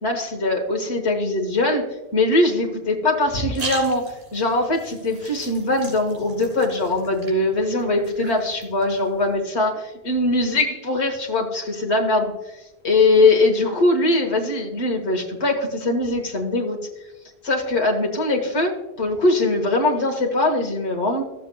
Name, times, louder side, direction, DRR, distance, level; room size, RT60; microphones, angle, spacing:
voice 1, 0.0-1.8 2.1-12.3 12.8-16.8 17.4-21.2, left 2 dB, 80° left, 1 dB, 1.6 m, -21 dB
sound 1, 3.2-9.3, right 3 dB, 50° right, 2.5 m, -38 dB
15.5 x 6.8 x 2.2 m, 1.0 s
omnidirectional pair, 1.1 m